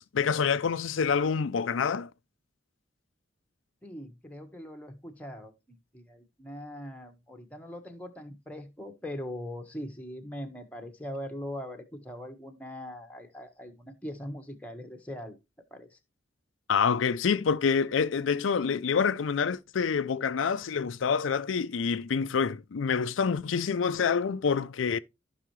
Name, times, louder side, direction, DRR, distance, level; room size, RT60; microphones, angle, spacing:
voice 1, 0.0-2.1 16.7-25.0, left 6 dB, 90° left, 0.5 m, -27 dB
voice 2, 3.8-15.4 15.7-16.0, left 1 dB, 10° left, 1.4 m, -41 dB
14.5 x 5.7 x 3.1 m
head